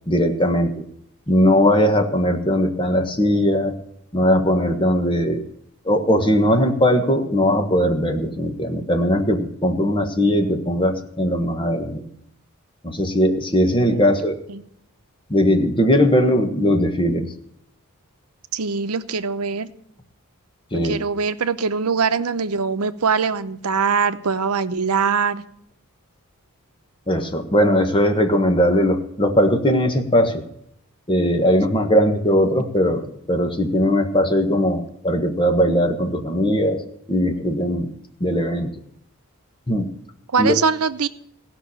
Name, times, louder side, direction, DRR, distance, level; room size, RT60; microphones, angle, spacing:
voice 1, 0.1-0.7 1.3-3.7 4.1-5.4 5.8-12.0 12.8-14.4 15.3-17.3 20.7-21.0 27.1-30.4 31.1-36.8 37.1-37.9 38.2-38.7 39.7-39.9 40.4-40.6, equal, 25° left, 5 dB, 1.4 m, -19 dB
voice 2, 13.9-14.6 18.5-19.7 20.8-25.4 32.3-32.5 40.3-41.1, right 5 dB, 85° right, 12 dB, 0.8 m, -22 dB
16.5 x 6.1 x 8.4 m, 0.72 s
head